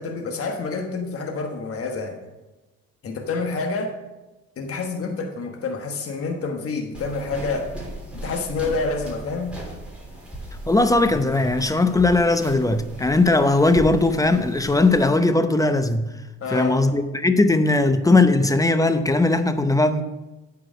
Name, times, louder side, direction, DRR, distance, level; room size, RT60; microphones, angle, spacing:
voice 1, 0.0-2.2 3.0-3.9 4.6-7.7 8.2-9.6 16.4-16.8, left 3 dB, 50° left, 3 dB, 1.3 m, -28 dB
sound 1, 6.9-15.0, right 1 dB, 5° right, 3.4 m, -37 dB
voice 2, 10.7-16.1 16.5-20.0, left 2 dB, 10° left, 9 dB, 0.7 m, -19 dB
9.0 x 4.8 x 6.2 m, 1.1 s
cardioid pair, 85°, 30 cm